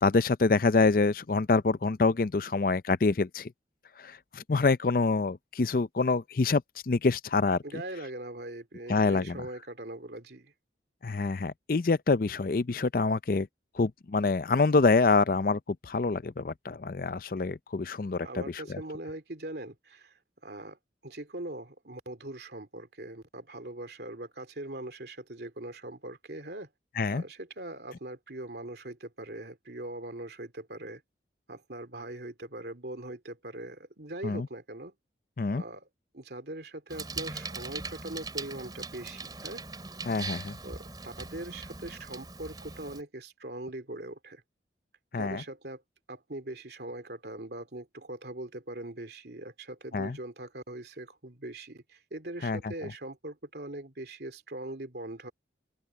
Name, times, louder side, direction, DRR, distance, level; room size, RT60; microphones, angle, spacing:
voice 1, 0.0-3.5 4.0-7.6 8.9-9.4 11.0-13.5 13.8-18.3 18.7-18.8 27.0-27.2 34.2-34.5 35.4-35.6 40.1-40.6 45.1-45.4 49.9-50.2 52.4-52.6, left 3 dB, 50° left, 0.5 m, -26 dB
voice 2, 7.6-10.5 18.2-20.8 21.0-26.7 27.1-31.0 31.5-34.9 35.5-35.9 36.1-39.6 40.6-44.4 45.1-45.8 46.1-55.3, right 1 dB, 65° right, 2.7 m, -41 dB
Bicycle, 36.9-43.0, right 3 dB, 20° right, 3.1 m, -40 dB
open air
head